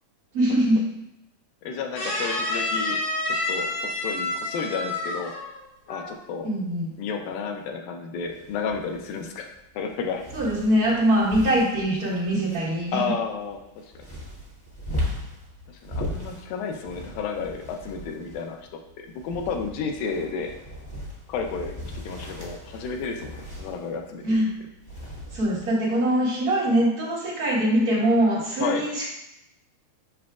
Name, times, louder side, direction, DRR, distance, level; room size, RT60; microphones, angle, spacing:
voice 1, 0.3-0.8 6.4-6.9 10.3-13.1 24.2-24.5 25.3-29.0, right 1 dB, 80° right, -8 dB, 0.8 m, -22 dB
voice 2, 1.6-3.0 3.3-5.3 5.9-6.5 7.0-9.5 9.8-10.3 12.9-13.9 15.7-18.6 19.0-20.5 21.3-24.4 28.6-28.8, left 5 dB, 80° left, 3 dB, 2.3 m, -32 dB
sound 1, 2.0-5.6 5.9-6.2, left 2 dB, 55° left, 1.3 m, -29 dB
sound 2, 8.2-25.7, left 1 dB, 20° left, 0.6 m, -38 dB
7.3 x 5.7 x 2.4 m, 0.85 s
omnidirectional pair, 4.1 m